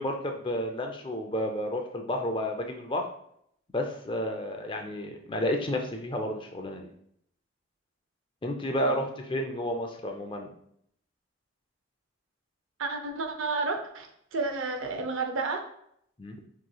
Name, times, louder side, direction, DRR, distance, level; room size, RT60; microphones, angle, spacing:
voice 1, 0.0-3.1 3.7-6.9 8.4-10.5 16.2-16.4, left 1 dB, 25° left, 3 dB, 0.5 m, -31 dB
voice 2, 12.8-15.7, right 3 dB, 75° right, 5 dB, 0.6 m, -31 dB
6.2 x 3.1 x 2.3 m, 0.71 s
head